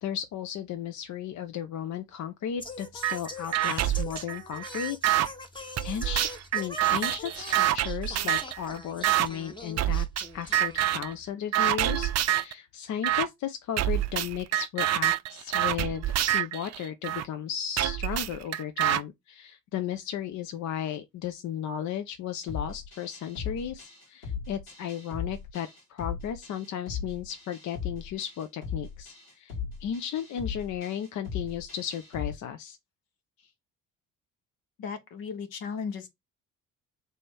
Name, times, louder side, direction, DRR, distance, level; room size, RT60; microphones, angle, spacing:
voice 1, 0.0-5.0 5.8-10.1 10.3-29.5 29.8-32.8, left 9 dB, 45° left, 0.6 m, -35 dB
Singing, 2.6-11.3, left 2 dB, 10° left, 1.0 m, -43 dB
sound 1, 3.0-3.2 3.5-5.3 5.8-8.6 9.0-9.3 9.8-10.3 10.5-11.1 11.5-12.5 13.0-13.3 13.8-17.2 17.8-19.0, right 13 dB, 40° right, 0.5 m, -26 dB
sound 2, 22.5-32.3, left 6 dB, 85° left, 2.1 m, -38 dB
voice 2, 34.8-36.1, left 6 dB, 60° left, 1.1 m, -36 dB
3.4 x 3.1 x 4.2 m
hypercardioid pair, 50°, 40 cm